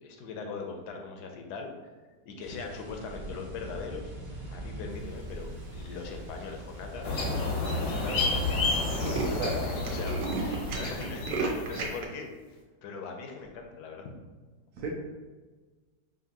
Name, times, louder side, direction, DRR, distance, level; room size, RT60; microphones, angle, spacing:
voice 1, 0.0-1.7 2.3-4.1 4.5-7.1 7.6-8.4 8.8-12.3 12.8-14.1, left 4 dB, 75° left, 3 dB, 1.2 m, -40 dB
sound 1, 2.4-11.1, right 1 dB, 25° right, 0.6 m, -44 dB
Tools, 6.0-6.4 7.0-7.1 7.3-7.4 7.7-7.9 8.2-8.3 8.6-12.0, right 4 dB, 85° right, 1.3 m, -34 dB
sound 2, 7.0-11.9, left 3 dB, 55° left, 0.7 m, -30 dB
voice 2, 9.1-9.6 14.8-14.9, right 4 dB, 70° right, -2 dB, 0.9 m, -34 dB
5.0 x 2.6 x 2.8 m, 1.3 s
omnidirectional pair, 1.8 m